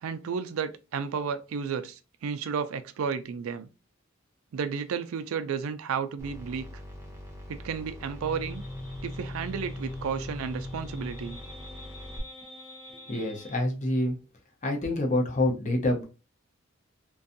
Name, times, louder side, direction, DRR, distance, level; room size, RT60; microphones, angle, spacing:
voice 1, 0.0-3.7 4.5-6.7 7.5-8.6 9.0-11.4, right 6 dB, 85° right, 0.4 m, -32 dB
sound 1, 6.2-12.2, equal, 15° right, 0.6 m, -44 dB
sound 2, 8.2-13.6, left 1 dB, 80° left, 1.1 m, -41 dB
voice 2, 13.1-14.2 14.6-16.0, left 1 dB, 35° left, 0.6 m, -27 dB
2.6 x 2.2 x 2.5 m
head